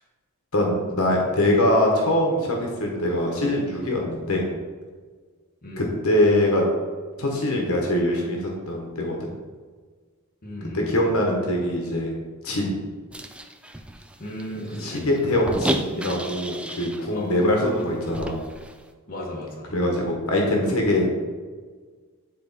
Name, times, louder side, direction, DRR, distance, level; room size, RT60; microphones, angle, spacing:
voice 1, 0.5-4.4 5.8-6.6 7.2-9.3 10.7-12.1 12.4-12.8 14.8-18.4 19.7-21.1, left 1 dB, 75° left, 0 dB, 1.3 m, -23 dB
voice 2, 10.4-10.9 14.2-15.1 17.1-17.4 19.1-19.7, left 1 dB, 45° left, -3 dB, 1.4 m, -34 dB
sound 1, 13.1-17.0 17.4-17.5 17.8-18.8, right 1 dB, 5° right, 0.4 m, -32 dB
9.5 x 4.0 x 4.1 m, 1.5 s
head